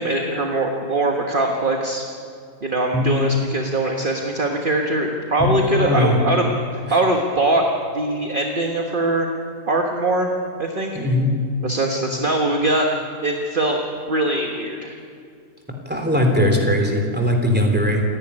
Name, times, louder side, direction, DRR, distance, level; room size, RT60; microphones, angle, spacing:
voice 1, 0.0-2.0 2.6-7.6 7.9-9.3 9.7-10.3 10.6-10.9 11.6-12.9 13.2-13.8 14.1-15.0, right 2 dB, 40° right, 2 dB, 1.5 m, -22 dB
voice 2, 5.4-6.2 10.9-11.3 15.8-18.0, left 1 dB, 5° right, 1 dB, 3.3 m, -19 dB
28.0 x 10.5 x 9.9 m, 2.3 s
omnidirectional pair, 1.5 m